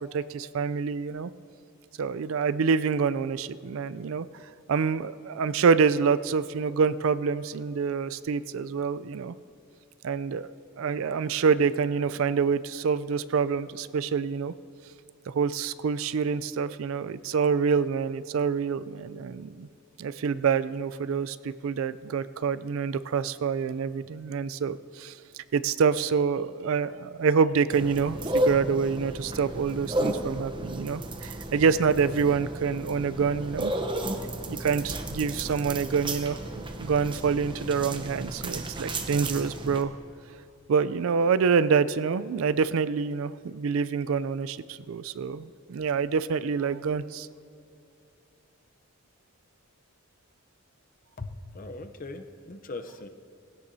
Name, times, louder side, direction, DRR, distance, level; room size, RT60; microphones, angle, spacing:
voice 1, 0.1-1.3 2.0-4.3 4.7-9.3 10.0-10.5 10.8-14.5 15.3-19.7 20.0-25.1 25.5-33.7 34.5-39.9 40.7-47.3, right 5 dB, 65° right, 14 dB, 0.4 m, -26 dB
sound 1, 27.7-39.8, right 1 dB, 20° right, 0.8 m, -33 dB
voice 2, 51.2-53.1, left 2 dB, 40° left, 7 dB, 0.7 m, -39 dB
20.0 x 16.5 x 2.7 m, 2.5 s
head